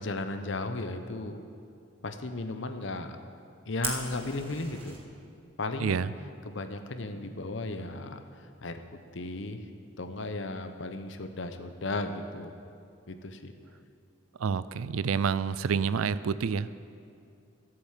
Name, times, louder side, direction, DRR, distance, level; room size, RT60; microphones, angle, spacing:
voice 1, 0.0-1.4 2.0-3.1 3.7-5.0 5.6-6.0 6.5-8.2 8.6-8.8 9.1-9.7 10.0-12.5 13.1-13.5, left 2 dB, 65° left, 7 dB, 0.9 m, -35 dB
Fire, 3.8-5.0, right 4 dB, 25° right, 1.6 m, -37 dB
voice 2, 5.8-6.1 14.4-16.7, right 6 dB, 90° right, 16 dB, 0.4 m, -28 dB
13.0 x 8.0 x 7.4 m, 2.4 s
head